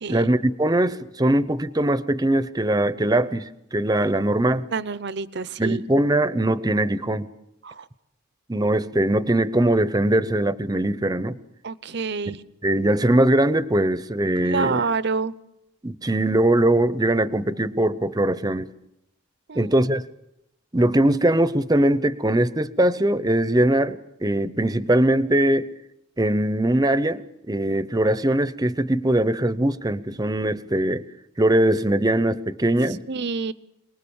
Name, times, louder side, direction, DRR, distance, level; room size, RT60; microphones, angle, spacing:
voice 1, 0.1-4.7 5.6-7.3 8.5-11.4 12.3-12.4 12.6-14.8 15.8-18.7 19.6-20.0 20.7-25.7 26.2-27.2 27.5-31.0 31.4-33.0, right 1 dB, 20° right, 14 dB, 0.8 m, -21 dB
voice 2, 4.7-5.8 7.6-7.7 11.6-12.4 14.4-15.3 19.5-19.7 33.1-33.5, right 4 dB, 60° right, 16 dB, 0.8 m, -27 dB
28.0 x 20.0 x 7.1 m, 0.83 s
head